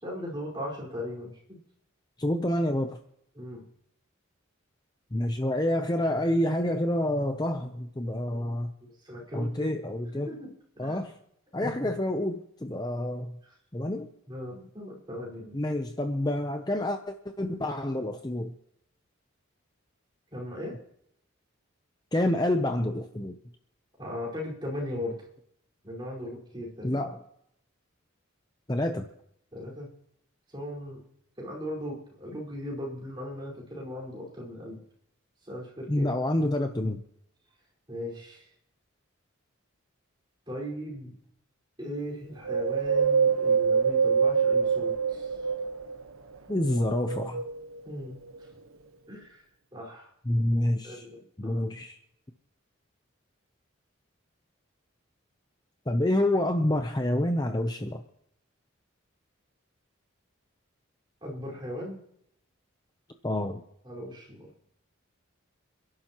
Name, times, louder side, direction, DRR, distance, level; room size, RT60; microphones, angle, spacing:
voice 1, 0.0-1.6 3.3-3.6 8.3-9.7 10.1-10.5 10.8-11.0 11.6-12.0 13.4-13.5 14.3-15.6 20.3-20.8 24.0-25.3 25.8-27.1 29.5-29.9 30.5-31.0 31.4-34.8 35.4-36.1 37.9-38.5 40.5-41.2 41.8-45.4 47.8-48.5 49.1-49.4 49.7-50.1 50.8-51.6 61.2-62.0 63.8-64.6, left 1 dB, 20° right, -4 dB, 4.9 m, -38 dB
voice 2, 2.2-3.0 5.1-8.7 9.3-10.3 10.8-11.1 11.5-13.3 13.7-14.1 15.5-17.0 17.4-18.5 22.1-23.4 26.8-27.2 28.7-29.1 35.9-37.0 46.5-47.4 50.3-51.1 51.4-52.0 55.9-58.0 63.2-63.6, left 1 dB, 20° left, 6 dB, 0.7 m, -28 dB
Wind, 42.4-46.0 46.6-47.8 48.3-48.4, right 6 dB, 80° right, 1.2 m, -25 dB
28.0 x 11.5 x 3.0 m, 0.73 s
head